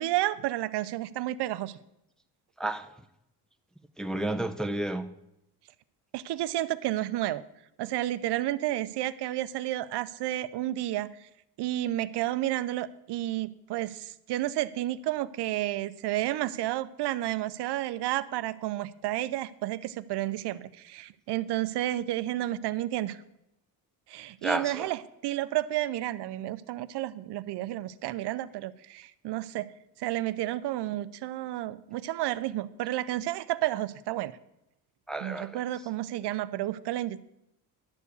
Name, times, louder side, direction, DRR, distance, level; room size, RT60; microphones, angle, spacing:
voice 1, 0.0-1.8 6.1-7.4 7.8-11.3 11.6-23.2 24.1-29.7 30.0-34.4 35.2-37.2, right 14 dB, 75° right, 15 dB, 0.6 m, -31 dB
voice 2, 2.6-2.9 4.0-5.1 24.4-24.9 35.1-35.6, right 1 dB, ahead, 7 dB, 0.5 m, -31 dB
11.5 x 4.5 x 8.2 m, 0.84 s
cardioid pair, 105°, 41 cm